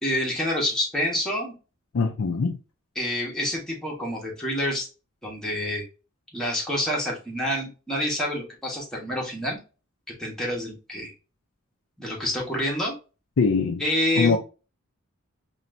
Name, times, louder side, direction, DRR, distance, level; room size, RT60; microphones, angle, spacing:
voice 1, 0.0-1.5 2.9-4.9 5.2-5.8 6.3-9.6 10.2-11.1 12.0-12.9 13.8-14.4, left 1 dB, 5° left, 1.4 m, -27 dB
voice 2, 1.9-2.6 13.4-13.8 14.2-14.4, left 4 dB, 70° left, 0.5 m, -22 dB
4.3 x 3.1 x 2.6 m
head